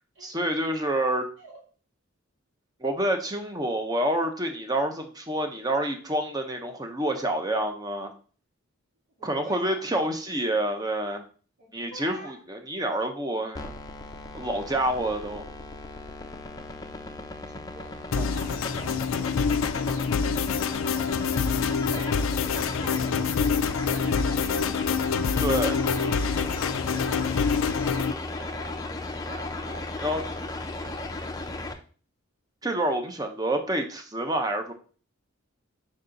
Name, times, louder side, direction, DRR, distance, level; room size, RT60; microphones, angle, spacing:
voice 1, 0.2-1.3 2.8-8.1 9.2-11.2 11.7-13.7 14.3-15.4 18.2-18.3 25.4-25.8 30.0-30.2 32.6-34.7, right 1 dB, 20° right, 5 dB, 0.8 m, -28 dB
voice 2, 9.1-10.1 11.6-12.4 16.5-16.8 17.7-20.4 20.7-21.2 21.7-23.2 23.7-24.8 28.3-31.3, right 2 dB, 65° right, -5 dB, 3.5 m, -47 dB
sound 1, 13.5-31.7, left 2 dB, 15° left, 0.5 m, -36 dB
sound 2, 18.1-28.1, left 6 dB, 70° left, 0.4 m, -26 dB
4.9 x 4.2 x 5.1 m, 0.40 s
head